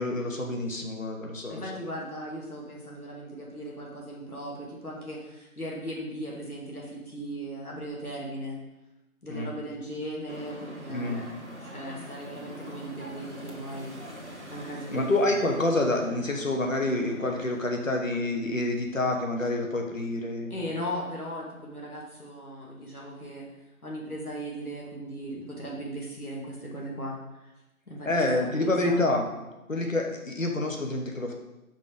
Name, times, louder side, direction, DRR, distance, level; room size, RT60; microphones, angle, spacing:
voice 1, 0.0-1.6 9.3-9.5 10.9-11.3 14.9-20.5 28.1-29.3 29.7-31.3, left 2 dB, 60° left, 2 dB, 1.2 m, -27 dB
voice 2, 1.5-8.6 9.2-14.0 14.3-15.1 20.5-23.4 23.8-27.5 27.9-29.1, equal, 80° left, -3 dB, 2.2 m, -38 dB
sound 1, 10.3-17.6, equal, 50° right, 1.3 m, -44 dB
5.1 x 4.5 x 5.3 m, 0.97 s
figure-of-eight pair, 170°, 44 cm